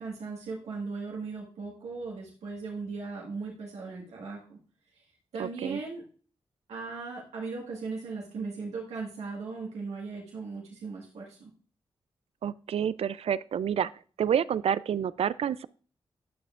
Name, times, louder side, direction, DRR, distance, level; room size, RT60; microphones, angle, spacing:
voice 1, 0.0-4.6 4.9-5.1 5.3-6.0 6.7-11.5, right 4 dB, 90° right, -3 dB, 1.6 m, -38 dB
voice 2, 5.4-5.8 12.4-13.9 14.2-15.7, right 8 dB, 65° right, 18 dB, 0.4 m, -28 dB
11.0 x 6.7 x 2.4 m, 0.41 s
supercardioid pair, 45°, 11 cm